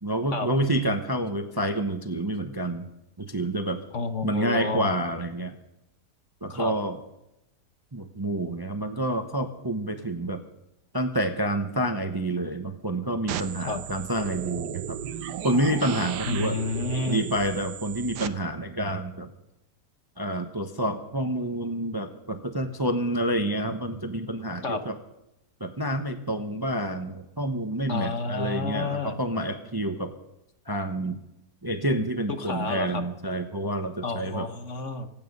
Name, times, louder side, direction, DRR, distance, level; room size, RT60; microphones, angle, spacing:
voice 1, 0.0-2.9 3.2-3.8 4.2-5.5 6.4-7.0 7.9-10.4 10.9-15.0 15.4-16.6 17.1-19.3 20.2-24.9 25.6-30.1 30.7-31.2 31.6-34.5, right 1 dB, 15° right, 7 dB, 0.9 m, -28 dB
voice 2, 3.9-4.9 6.5-6.7 13.6-13.8 16.3-17.2 24.6-24.8 27.9-29.2 32.3-33.0 34.0-35.1, left 3 dB, 50° left, 9 dB, 1.3 m, -30 dB
sound 1, 13.3-18.3, right 9 dB, 80° right, 1.4 m, -35 dB
25.5 x 9.4 x 5.4 m, 0.88 s
omnidirectional pair, 1.8 m